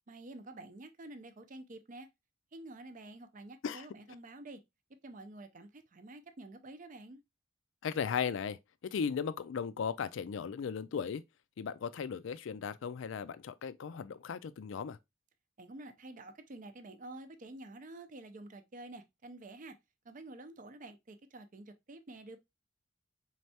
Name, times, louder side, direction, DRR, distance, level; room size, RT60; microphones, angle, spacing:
voice 1, 0.1-2.1 2.5-4.6 5.0-7.2 15.6-19.8 20.0-22.4, right 2 dB, 40° right, 0.5 m, -49 dB
voice 2, 7.8-11.2 11.6-15.0, left 6 dB, 65° left, 0.4 m, -36 dB
4.4 x 3.2 x 2.7 m
head